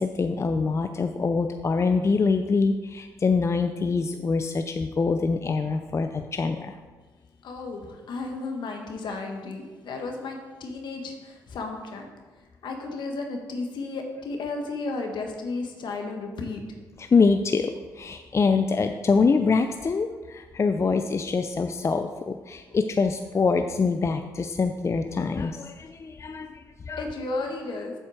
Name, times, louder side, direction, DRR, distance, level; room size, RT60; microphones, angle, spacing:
voice 1, 0.0-6.8 17.0-27.1, left 4 dB, 35° left, 7 dB, 0.5 m, -25 dB
voice 2, 7.4-12.1 12.6-16.6 27.0-27.9, left 3 dB, 65° left, 3 dB, 1.4 m, -33 dB
8.0 x 4.3 x 6.3 m, 1.3 s
supercardioid pair, 55°, 8 cm